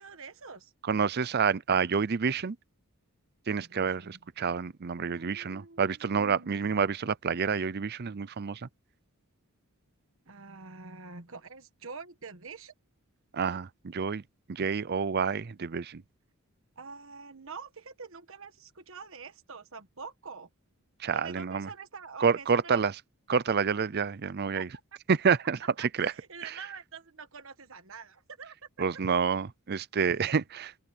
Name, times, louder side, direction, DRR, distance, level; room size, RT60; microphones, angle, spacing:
voice 1, 0.0-0.7 3.5-4.2 5.0-6.8 10.3-12.7 16.8-20.5 21.1-22.8 24.5-24.6 25.8-28.5, right 5 dB, 60° right, 1.4 m, -46 dB
voice 2, 0.9-2.6 3.5-8.7 13.3-14.2 14.5-16.0 21.0-21.7 22.2-22.9 23.3-24.7 25.1-26.1 26.4-26.6 28.8-30.8, right 6 dB, 45° right, 0.5 m, -28 dB
open air
head